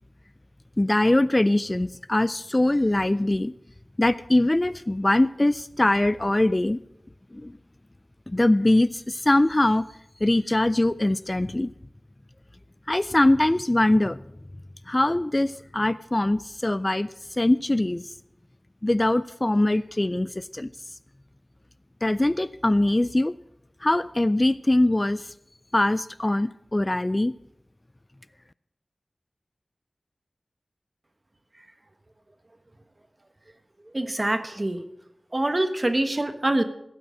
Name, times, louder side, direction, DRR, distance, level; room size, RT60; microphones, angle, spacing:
voice 1, 0.8-3.5 4.0-6.8 7.3-7.6 8.3-9.9 10.2-11.7 12.9-14.2 14.9-18.1 18.8-20.7 22.0-23.3 23.8-25.3 25.7-27.3, left 1 dB, 25° left, 15 dB, 0.3 m, -22 dB
voice 2, 33.9-34.8 35.3-36.6, right 1 dB, 35° right, 9 dB, 1.2 m, -25 dB
16.0 x 6.2 x 7.4 m, 0.84 s
wide cardioid pair, 55°, 0 cm